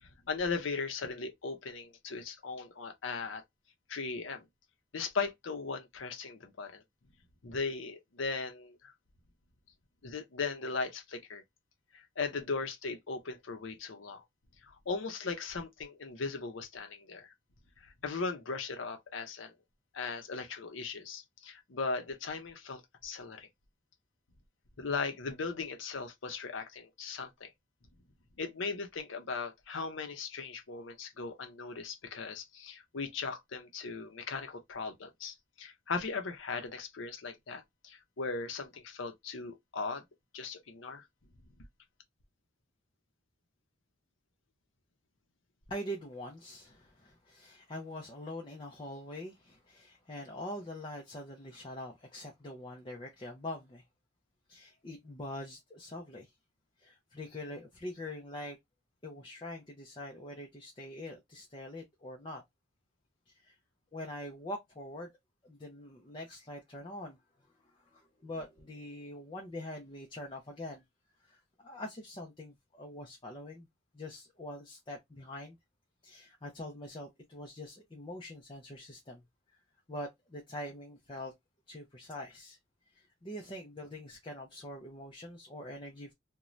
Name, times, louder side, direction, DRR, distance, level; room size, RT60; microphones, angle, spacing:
voice 1, 0.0-3.4 3.9-4.4 4.9-6.8 7.4-8.9 10.0-11.4 11.9-14.2 14.6-17.3 17.8-19.5 19.9-23.5 24.8-27.5 28.4-40.0 40.3-41.0, left 4 dB, 75° left, 0.6 m, -38 dB
voice 2, 45.7-53.8 54.5-56.3 56.8-58.6 59.0-62.4 63.3-63.6 63.9-65.1 65.4-67.2 67.6-70.8 71.2-73.7 73.9-75.6 76.0-79.2 79.9-81.3 81.7-82.6 82.9-86.1, left 1 dB, 25° left, 0.5 m, -44 dB
2.6 x 2.2 x 3.0 m
head